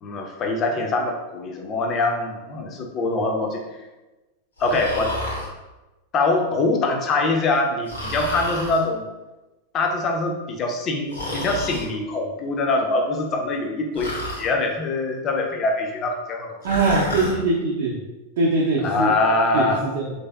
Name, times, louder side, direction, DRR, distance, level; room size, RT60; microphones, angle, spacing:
voice 1, 0.0-3.6 4.6-5.1 6.1-9.1 9.7-16.6 18.8-19.8, left 2 dB, 30° left, 2 dB, 0.4 m, -23 dB
Breathing, 4.6-5.5 7.9-8.8 11.1-11.9 14.0-14.5 16.6-17.4, left 1 dB, 75° left, 0.8 m, -30 dB
voice 2, 16.6-18.0 18.4-19.2 19.5-20.1, right 3 dB, 55° right, -5 dB, 0.5 m, -22 dB
3.2 x 2.6 x 2.3 m, 1.1 s
figure-of-eight pair, 90°, 0 cm